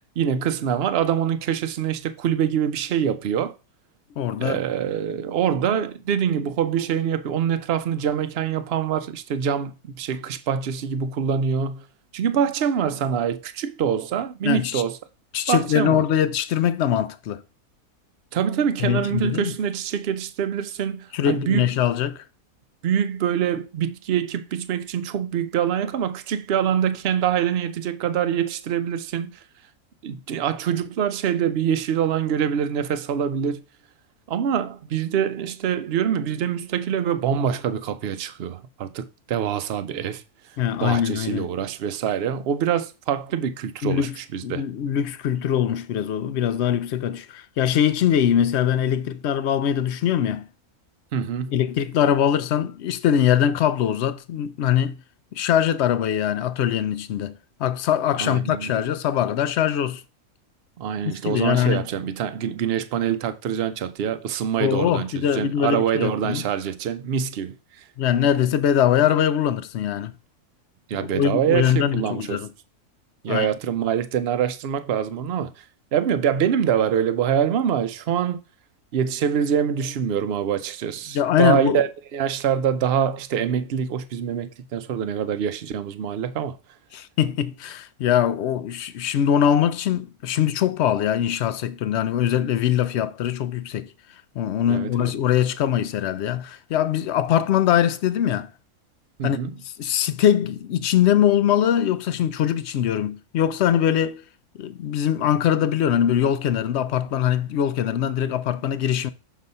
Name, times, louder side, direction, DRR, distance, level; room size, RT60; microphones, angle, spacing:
voice 1, 0.2-3.5 4.4-11.8 12.1-14.9 15.5-16.0 18.3-21.7 22.8-29.3 30.0-33.6 34.3-40.2 40.8-44.6 51.1-51.5 58.2-58.8 60.8-67.5 70.9-72.4 73.2-75.5 75.9-78.4 78.9-86.6 94.7-95.1 99.2-99.5, right 8 dB, 55° right, 0.7 m, -25 dB
voice 2, 4.2-4.6 14.4-14.8 15.3-17.4 18.8-19.5 21.1-22.2 40.6-41.5 43.8-44.1 44.4-50.5 51.5-55.0 55.3-57.3 57.6-60.0 61.0-61.9 64.6-66.4 68.0-70.1 70.9-72.5 73.3-73.5 81.1-81.9 86.9-93.9 94.4-98.5 99.2-99.4 99.6-104.2 104.6-109.1, left 10 dB, 70° left, 0.6 m, -22 dB
6.3 x 4.0 x 5.4 m
omnidirectional pair, 1.6 m